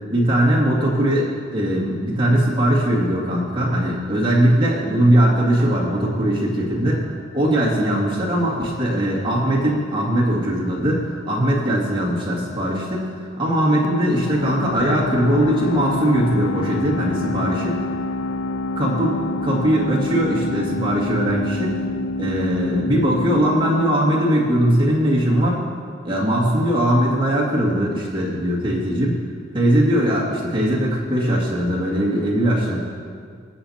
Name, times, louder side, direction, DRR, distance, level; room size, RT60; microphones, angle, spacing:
voice 1, 0.1-7.0 7.3-17.8 18.8-21.8 22.2-25.7 26.0-29.2 29.5-32.8, right 1 dB, 25° right, -5 dB, 2.2 m, -20 dB
sound 1, 13.8-25.2, left 2 dB, 85° left, 0.4 m, -27 dB
22.5 x 8.0 x 2.9 m, 2.1 s
head